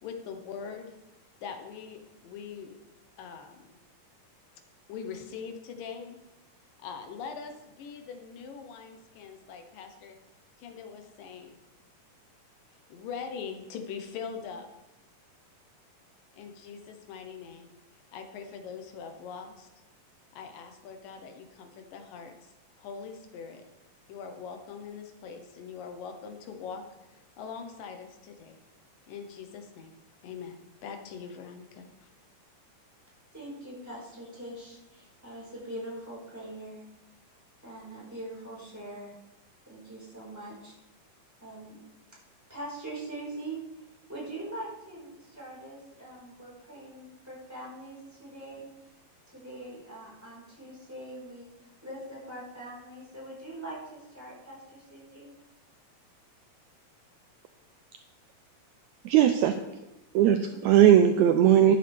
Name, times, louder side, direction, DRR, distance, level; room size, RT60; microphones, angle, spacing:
voice 1, 0.0-0.9 1.4-2.8 3.2-3.7 4.9-6.2 6.8-10.2 10.6-11.6 12.9-14.7 16.4-17.7 18.1-19.7 20.3-22.5 22.8-23.6 24.1-28.6 29.1-29.9 30.2-30.6 30.8-32.1, left 6 dB, 80° left, 5 dB, 2.8 m, -42 dB
voice 2, 33.3-36.8 37.6-39.1 39.6-40.7 41.4-41.8 42.5-43.6 44.1-48.7 49.3-55.3 60.5-60.6, right 1 dB, 5° right, -6 dB, 4.4 m, -42 dB
voice 3, 59.0-59.6 60.1-61.8, right 10 dB, 85° right, 7 dB, 1.7 m, -19 dB
13.0 x 10.5 x 3.5 m, 0.97 s
omnidirectional pair, 3.9 m